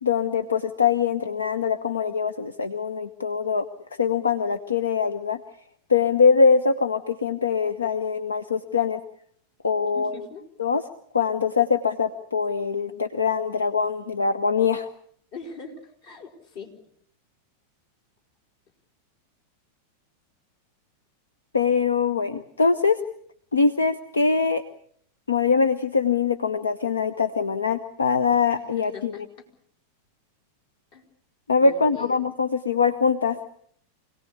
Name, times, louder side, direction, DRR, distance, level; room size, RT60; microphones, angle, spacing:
voice 1, 0.0-3.7 4.0-5.4 5.9-9.0 9.6-10.2 10.6-10.9 11.1-14.9 21.5-23.0 23.5-24.6 25.3-29.3 31.5-33.4, left 5 dB, 75° left, 11 dB, 1.0 m, -23 dB
voice 2, 9.9-10.4 15.3-15.7 16.0-16.7 28.5-29.2 30.9-31.0 31.6-32.2, left 4 dB, 50° left, 3 dB, 5.1 m, -41 dB
26.0 x 18.5 x 8.4 m, 0.64 s
figure-of-eight pair, 90°, 0 cm